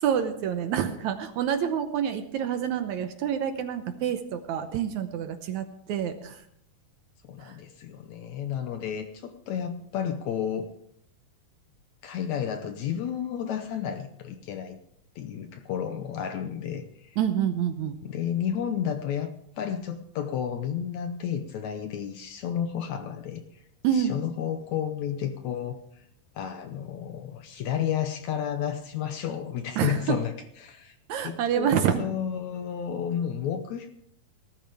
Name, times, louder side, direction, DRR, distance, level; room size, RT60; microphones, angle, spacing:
voice 1, 0.0-6.4 7.4-7.5 17.2-18.0 23.8-24.2 29.8-30.2 31.1-32.2, right 9 dB, 75° right, 8 dB, 1.8 m, -27 dB
voice 2, 7.2-10.7 12.0-14.8 15.1-17.2 18.0-23.4 23.9-25.8 26.3-33.9, left 9 dB, 75° left, 7 dB, 1.7 m, -32 dB
19.0 x 13.5 x 3.5 m, 0.70 s
omnidirectional pair, 4.2 m